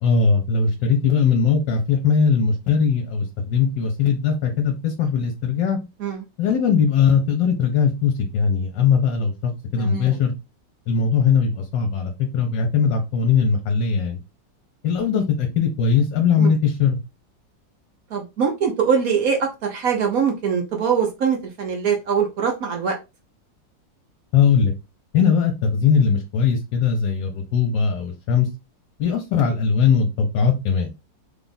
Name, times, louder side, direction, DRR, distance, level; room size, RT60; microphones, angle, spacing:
voice 1, 0.0-5.8 6.4-10.3 10.9-14.2 14.8-17.0 24.3-24.7 25.1-28.5 29.0-30.9, left 6 dB, 75° left, 3 dB, 1.4 m, -20 dB
voice 2, 9.8-10.2 16.4-16.5 18.1-22.9, right 6 dB, 60° right, 2 dB, 1.1 m, -22 dB
3.5 x 2.4 x 3.9 m, 0.26 s
omnidirectional pair, 2.0 m